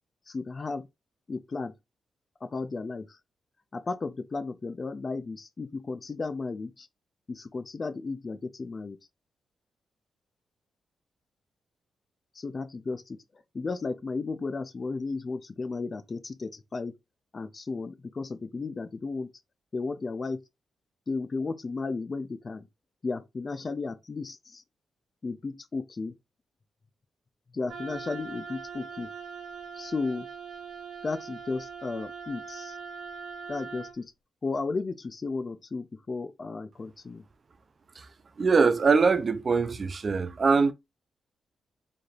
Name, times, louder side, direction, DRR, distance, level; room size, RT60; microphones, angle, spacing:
voice 1, 0.3-0.9 1.3-1.7 2.4-3.2 3.7-6.9 7.3-9.0 12.4-13.2 13.5-16.9 17.3-19.3 19.7-20.4 21.1-22.7 23.0-24.6 25.2-26.1 27.5-29.1 29.7-30.3 31.0-32.8 33.5-34.1 34.4-37.2, left 3 dB, 35° left, 0.4 m, -34 dB
Wind instrument woodwind instrument, 27.7-34.0, right 6 dB, 85° right, 1.2 m, -41 dB
voice 2, 38.4-40.7, right 5 dB, 40° right, 0.4 m, -23 dB
4.1 x 3.3 x 2.4 m
cardioid pair, 115°, 0 cm